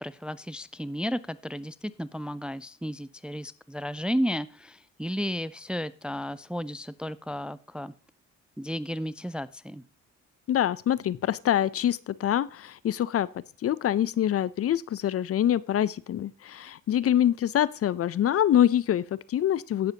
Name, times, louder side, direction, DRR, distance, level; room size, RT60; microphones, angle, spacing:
voice 1, 0.0-7.9 8.6-9.8, equal, 5° right, 16 dB, 0.4 m, -33 dB
voice 2, 10.5-13.3 13.6-19.9, left 11 dB, 50° left, 19 dB, 0.5 m, -25 dB
17.5 x 6.6 x 2.8 m, 0.38 s
cardioid pair, 90°, 30 cm